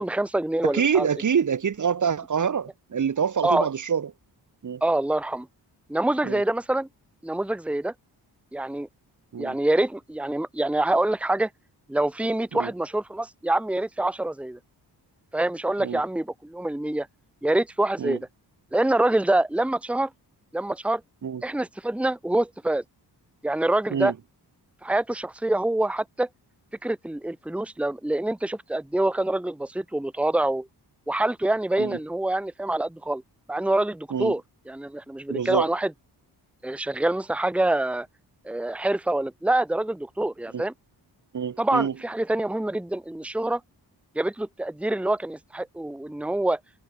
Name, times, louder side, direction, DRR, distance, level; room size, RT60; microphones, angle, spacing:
voice 1, 0.0-1.1 3.4-3.7 4.8-5.5 5.9-6.9 7.2-7.9 8.5-8.9 9.4-11.5 11.9-14.6 15.3-17.1 17.4-18.3 18.7-20.1 20.5-21.0 21.4-22.8 23.4-24.1 24.8-26.3 26.8-30.7 31.1-33.2 33.5-34.4 34.7-35.9 36.6-38.1 38.4-40.7 41.6-43.6 44.1-46.6, right 1 dB, 5° right, 1.3 m, -25 dB
voice 2, 0.6-4.1 4.6-4.8 6.2-6.4 9.3-9.6 12.5-12.7 15.8-16.0 18.0-18.2 21.2-21.4 23.9-24.1 31.8-32.0 34.1-34.3 35.3-35.7 40.5-40.6 41.3-41.9, right 7 dB, 45° right, 1.5 m, -26 dB
wide cardioid pair, 135°, 41 cm